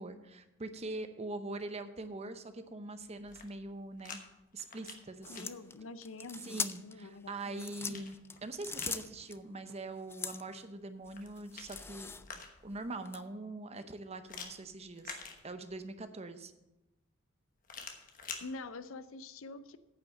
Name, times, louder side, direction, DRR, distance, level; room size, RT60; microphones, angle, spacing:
voice 1, 0.0-4.2 4.5-5.5 6.4-8.2 8.4-12.1 12.6-16.5, right 2 dB, 30° right, 10 dB, 0.7 m, -43 dB
sound 1, 3.1-4.2 4.5-5.4 7.2-9.0 11.0-12.8 14.3-15.9 17.6-18.4, left 5 dB, 40° left, 1.2 m, -48 dB
sound 2, 5.2-7.0 7.5-9.4 10.1-10.6 11.1-12.4 13.0-13.2, left 5 dB, 10° left, 0.3 m, -41 dB
voice 2, 5.3-7.6 7.9-8.0 18.4-19.8, left 3 dB, 70° left, 13 dB, 0.5 m, -46 dB
9.3 x 5.6 x 7.5 m, 0.96 s
head